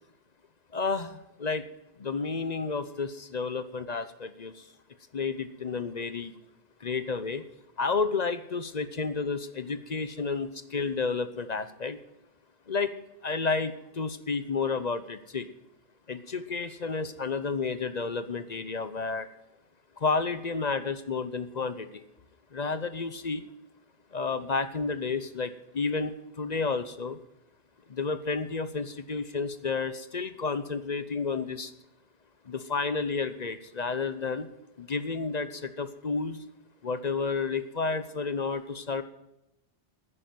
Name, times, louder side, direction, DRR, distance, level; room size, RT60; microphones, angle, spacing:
voice 1, 0.7-1.7 2.0-4.6 5.1-6.3 6.8-7.4 7.8-12.0 12.7-12.9 13.2-15.5 16.1-19.3 20.0-22.0 22.5-23.5 24.1-27.2 27.9-31.7 32.5-34.5 34.8-36.4 36.8-39.0, left 4 dB, 40° left, 12 dB, 0.8 m, -31 dB
9.9 x 9.8 x 9.1 m, 0.89 s
omnidirectional pair, 1.2 m